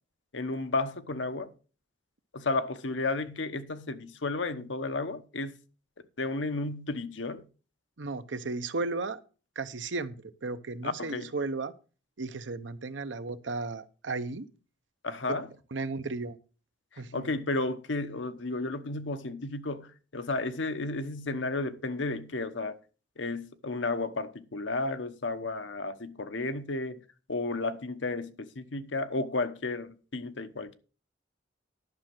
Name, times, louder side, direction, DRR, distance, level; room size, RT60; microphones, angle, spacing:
voice 1, 0.3-1.5 2.3-5.6 6.2-7.4 10.8-11.3 15.0-15.5 16.9-22.8 23.2-27.0 27.3-30.8, left 3 dB, 80° left, 1.0 m, -33 dB
voice 2, 8.0-9.2 9.6-11.7 12.2-14.5 15.3-15.4 15.7-16.4 17.0-17.3, right 3 dB, 75° right, 0.9 m, -34 dB
11.0 x 6.3 x 6.0 m
head